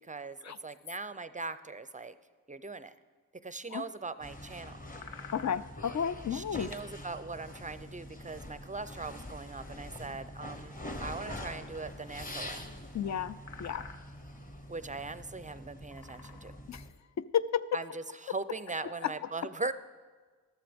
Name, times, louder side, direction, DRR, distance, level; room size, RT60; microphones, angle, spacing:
voice 1, 0.0-2.2 2.5-2.9 3.4-4.8 6.3-12.6 14.7-16.5 17.7-19.7, right 3 dB, 20° right, 14 dB, 0.4 m, -40 dB
sound 1, 4.2-16.9, left 1 dB, 25° left, 1.1 m, -45 dB
sound 2, 5.0-5.8 8.8-8.9 12.4-12.5 12.9-13.0 13.4-14.2 14.9-15.0 15.7-16.7, left 6 dB, 80° left, 0.8 m, -49 dB
voice 2, 5.3-6.7 12.9-13.9 16.7-16.8 17.2-17.8 19.0-19.1, left 8 dB, 50° left, 14 dB, 0.4 m, -32 dB
13.5 x 12.5 x 3.5 m, 1.4 s
cardioid pair, 55°, 35 cm